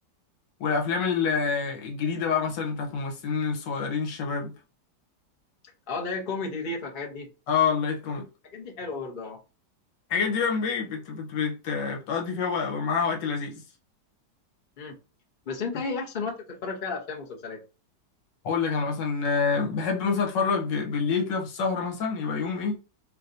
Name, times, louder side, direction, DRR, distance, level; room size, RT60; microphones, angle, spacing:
voice 1, 0.6-4.5 7.5-8.3 10.1-13.6 18.4-22.8, left 5 dB, 90° left, 1.6 m, -27 dB
voice 2, 5.9-7.3 8.5-9.4 14.8-15.0 15.5-17.6, left 4 dB, 35° left, 0.9 m, -33 dB
4.7 x 3.1 x 2.6 m
omnidirectional pair, 1.9 m